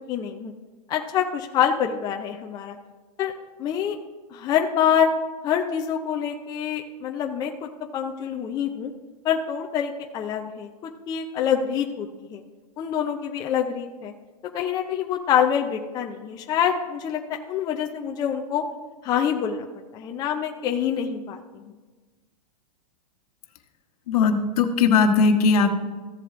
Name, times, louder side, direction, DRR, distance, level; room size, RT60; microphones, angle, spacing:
voice 1, 0.1-0.5 0.9-2.8 3.2-3.3 3.6-4.0 4.3-5.1 5.4-8.9 9.2-12.4 12.8-14.1 14.5-17.2 17.5-18.6 19.0-19.7 19.9-21.7, left 8 dB, 20° left, 3 dB, 0.5 m, -26 dB
voice 2, 24.1-25.7, left 4 dB, 65° left, 5 dB, 1.2 m, -19 dB
15.0 x 7.6 x 2.5 m, 1.3 s
hypercardioid pair, 150°, 21 cm